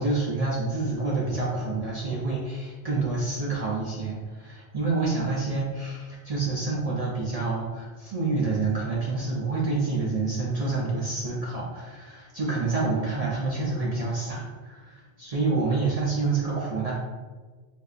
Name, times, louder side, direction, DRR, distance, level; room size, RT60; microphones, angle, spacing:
voice 1, 0.0-16.9, right 3 dB, 50° right, -5 dB, 0.4 m, -28 dB
4.0 x 2.7 x 2.4 m, 1.4 s
omnidirectional pair, 1.2 m